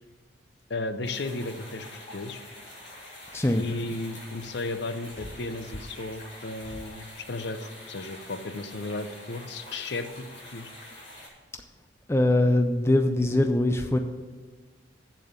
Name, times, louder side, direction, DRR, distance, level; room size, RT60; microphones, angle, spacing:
voice 1, 0.7-2.5 3.5-10.7, left 2 dB, 60° left, 10 dB, 0.7 m, -35 dB
sound 1, 1.0-11.3, left 1 dB, 35° left, 3.5 m, -46 dB
voice 2, 12.1-14.0, left 1 dB, 15° left, 6 dB, 0.4 m, -22 dB
7.7 x 7.4 x 8.0 m, 1.4 s
head